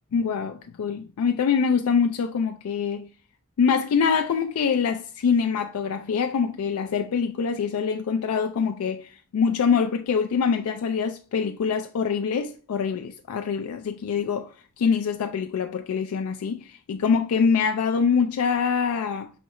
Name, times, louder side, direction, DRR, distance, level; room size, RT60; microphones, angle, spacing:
voice 1, 0.1-3.1 3.6-14.5 14.8-19.3, left 6 dB, 80° left, 0.3 m, -24 dB
4.8 x 3.1 x 2.9 m
head